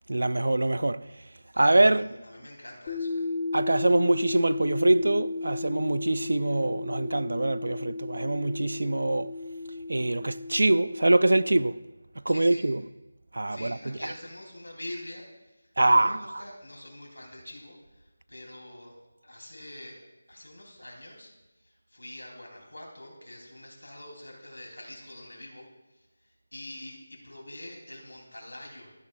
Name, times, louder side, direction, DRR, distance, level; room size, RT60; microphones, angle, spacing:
voice 1, 0.1-1.0 1.6-2.1 3.5-9.3 9.9-11.8 12.3-12.8 13.3-13.8 15.8-16.4, right 2 dB, 75° right, 0.4 m, -24 dB
voice 2, 1.5-3.3 12.3-12.7 13.5-21.3 21.6-28.9, left 1 dB, 85° left, 3.5 m, -45 dB
sound 1, 2.9-11.7, left 3 dB, 25° left, 0.9 m, -34 dB
13.0 x 10.5 x 2.5 m
figure-of-eight pair, 165°, 0 cm